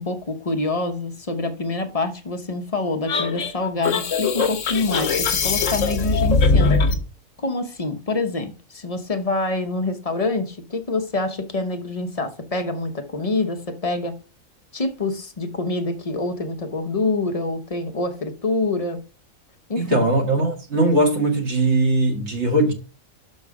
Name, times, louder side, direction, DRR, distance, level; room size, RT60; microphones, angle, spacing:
voice 1, 0.0-6.9 7.4-14.1 14.7-19.0 19.7-20.0, left 2 dB, 30° left, 0.8 m, -26 dB
sound 1, 3.1-7.0, left 4 dB, 60° left, 1.3 m, -21 dB
voice 2, 19.8-22.7, right 2 dB, 50° right, 1.9 m, -20 dB
6.4 x 5.4 x 4.8 m
omnidirectional pair, 1.5 m